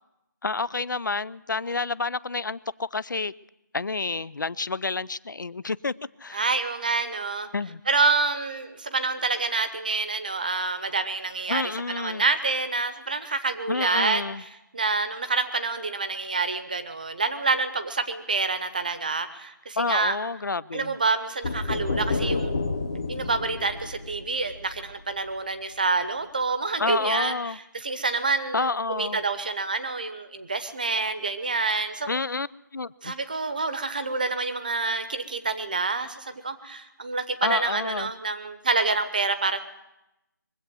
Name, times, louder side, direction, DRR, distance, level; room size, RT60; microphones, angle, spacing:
voice 1, 0.4-3.3 3.7-5.9 6.2-6.4 7.5-7.8 11.5-12.2 13.7-14.4 19.8-21.0 26.8-27.6 28.5-29.2 32.1-32.5 32.7-33.1 37.4-38.1, left 4 dB, 75° left, 20 dB, 0.5 m, -29 dB
voice 2, 6.3-7.5 7.9-11.6 11.9-20.2 20.7-22.5 23.1-32.1 33.0-39.6, right 3 dB, 25° right, 10 dB, 0.8 m, -27 dB
sound 1, 21.4-25.2, left 3 dB, 20° left, 0.9 m, -30 dB
23.0 x 8.1 x 7.6 m, 0.91 s
figure-of-eight pair, 175°, 11 cm